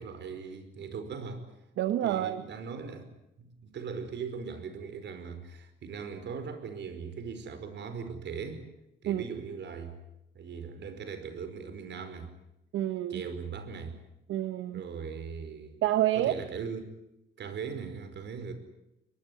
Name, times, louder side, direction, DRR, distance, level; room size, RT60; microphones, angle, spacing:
voice 1, 0.0-1.4 2.0-3.1 3.4-8.6 9.0-10.0 10.3-12.3 13.1-14.0 14.7-15.8 16.1-16.9 17.4-18.5, right 5 dB, 65° right, 9 dB, 5.2 m, -39 dB
voice 2, 1.8-2.4 9.1-9.2 12.7-13.2 14.3-14.8 15.8-16.3, right 12 dB, 80° right, 11 dB, 1.2 m, -28 dB
23.0 x 22.0 x 9.6 m, 0.87 s
cardioid pair, 90°, 20 cm